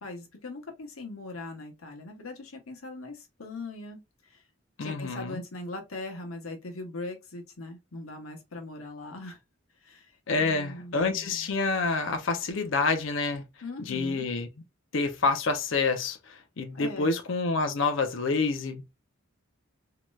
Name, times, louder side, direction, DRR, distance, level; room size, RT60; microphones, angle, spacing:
voice 1, 0.0-4.4 4.8-9.4 9.8-10.1 10.4-11.5 13.6-14.2 16.7-17.1, left 2 dB, 90° left, 1.0 m, -40 dB
voice 2, 4.8-5.4 10.3-13.5 13.9-14.5 14.9-18.8, left 3 dB, 65° left, 0.5 m, -28 dB
3.1 x 2.8 x 2.3 m
head